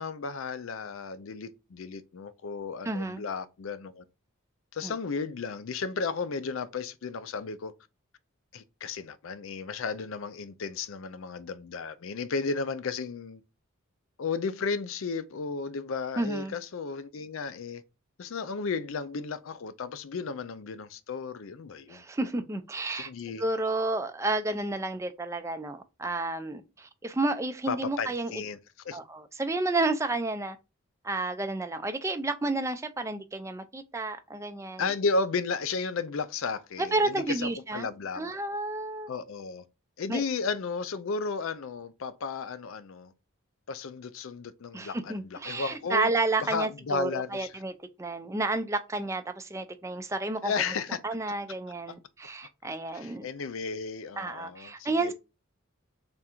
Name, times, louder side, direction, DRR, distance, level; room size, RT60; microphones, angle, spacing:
voice 1, 0.0-4.0 4.7-7.7 8.5-13.4 14.2-17.8 18.2-22.0 22.9-23.4 27.7-28.6 28.8-29.0 34.8-38.2 39.1-39.6 40.0-43.1 43.7-46.1 46.4-47.6 50.4-51.0 51.9-52.0 52.9-55.1, left 4 dB, 75° left, 0.4 m, -34 dB
voice 2, 2.8-3.2 4.8-4.9 16.2-16.5 21.9-23.1 23.4-28.4 28.9-30.6 31.0-34.8 36.8-37.9 38.1-39.1 40.1-40.2 44.7-50.7 51.0-53.3 54.2-55.1, right 2 dB, 15° right, 0.3 m, -31 dB
3.5 x 2.5 x 4.3 m
head